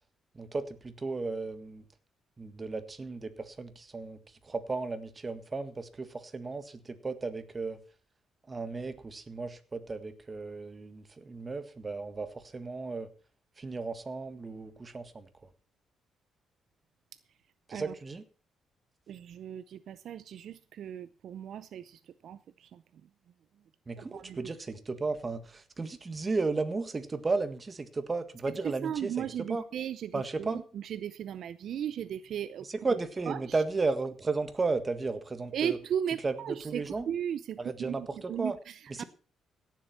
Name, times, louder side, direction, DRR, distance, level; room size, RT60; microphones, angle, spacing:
voice 1, 0.4-1.8 2.4-4.2 4.5-6.7 7.0-7.8 8.5-13.1 13.6-15.2 17.7-18.2 23.9-29.6 30.1-30.6 32.6-35.8 36.2-37.1 37.6-38.6 38.9-39.0, right 3 dB, 30° right, 1.7 m, -34 dB
voice 2, 19.1-22.4 24.0-24.4 28.8-32.7 33.3-33.4 35.5-39.0, right 9 dB, 70° right, 0.6 m, -36 dB
17.0 x 7.6 x 5.8 m
cardioid pair, 90°, 0 cm